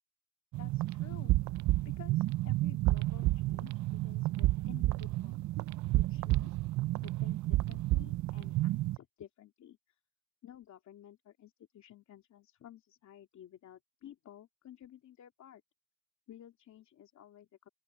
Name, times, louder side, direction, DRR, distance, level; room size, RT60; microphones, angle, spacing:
sound 1, 0.5-9.0, right 17 dB, 70° right, 0.5 m, -31 dB
voice 1, 0.6-1.3 1.8-5.4 5.9-6.6 7.0-10.0 10.4-15.6 16.3-17.7, left 11 dB, 65° left, 2.8 m, -54 dB
open air
cardioid pair, 90°, 30 cm